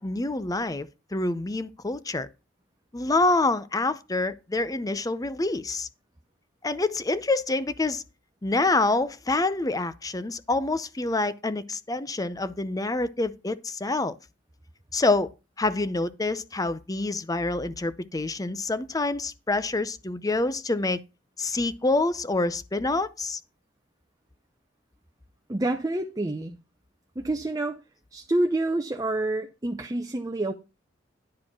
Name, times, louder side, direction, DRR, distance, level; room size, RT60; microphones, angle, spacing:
voice 1, 0.0-2.3 2.9-5.9 6.6-8.0 8.4-14.2 14.9-15.3 15.6-21.0 21.4-23.4, left 2 dB, 20° left, 0.6 m, -27 dB
voice 2, 25.5-26.5 27.2-27.8 28.1-30.5, right 2 dB, 20° right, 0.7 m, -27 dB
10.5 x 4.8 x 6.0 m
head